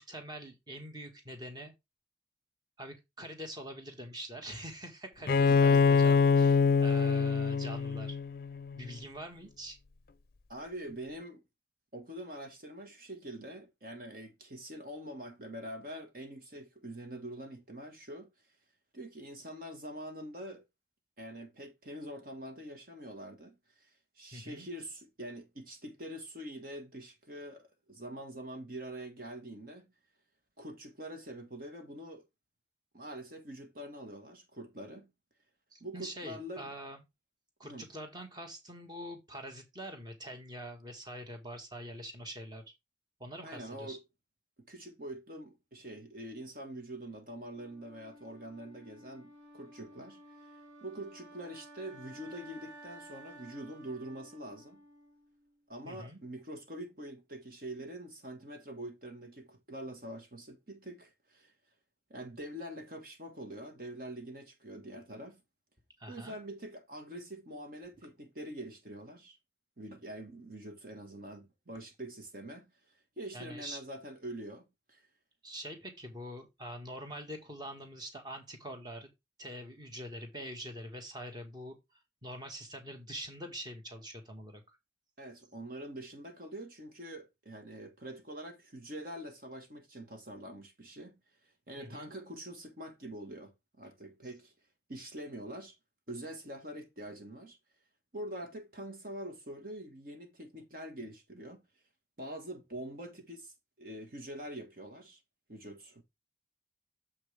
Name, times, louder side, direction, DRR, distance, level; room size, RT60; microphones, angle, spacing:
voice 1, 0.0-1.7 2.8-8.2 8.8-9.8 24.3-24.7 35.7-37.0 37.6-42.6 43.2-44.0 55.8-56.2 66.0-66.4 73.3-73.8 75.4-79.1 79.4-81.8 82.2-84.6 91.8-92.1, equal, 25° right, 1.7 m, -44 dB
Bowed string instrument, 5.3-8.9, left 5 dB, 55° left, 0.5 m, -25 dB
voice 2, 5.5-5.8 10.5-11.4 11.9-18.3 18.9-20.6 21.2-29.9 30.6-32.3 32.9-35.1 35.8-36.7 37.6-37.9 43.4-44.0 44.6-50.2 50.8-54.8 55.7-61.5 62.1-65.4 66.1-69.4 69.8-72.7 73.2-75.1 85.2-91.1 91.7-94.5 94.9-95.8 96.1-97.6 98.1-101.6 102.2-105.2 105.5-106.0, right 1 dB, 50° right, 1.6 m, -45 dB
Wind instrument woodwind instrument, 47.5-55.6, right 1 dB, 85° right, 2.8 m, -54 dB
7.4 x 6.0 x 3.4 m
head